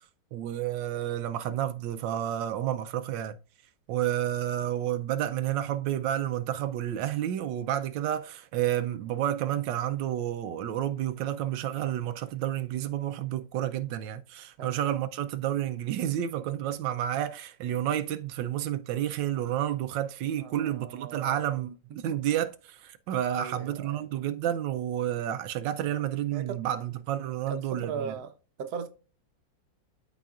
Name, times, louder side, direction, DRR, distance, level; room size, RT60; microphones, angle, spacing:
voice 1, 0.3-3.4 3.9-28.1, right 11 dB, 90° right, 1.3 m, -30 dB
voice 2, 20.4-21.4 22.1-22.2 23.3-24.0 25.9-26.0 26.3-26.6 27.5-28.3 28.6-28.9, right 6 dB, 65° right, 1.3 m, -38 dB
13.0 x 4.7 x 2.4 m
omnidirectional pair, 1.9 m